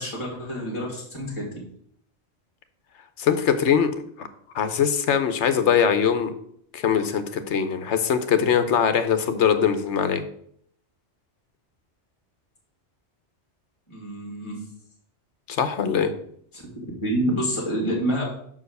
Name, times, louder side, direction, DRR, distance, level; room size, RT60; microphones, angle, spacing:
voice 1, 0.0-1.6 13.9-14.6 16.5-16.6 17.0-18.2, equal, 25° left, -2 dB, 2.2 m, -27 dB
voice 2, 3.2-4.3 4.5-6.3 6.7-10.2 15.5-16.1, left 7 dB, 80° left, 9 dB, 1.1 m, -22 dB
5.5 x 5.0 x 6.5 m, 0.65 s
omnidirectional pair, 1.2 m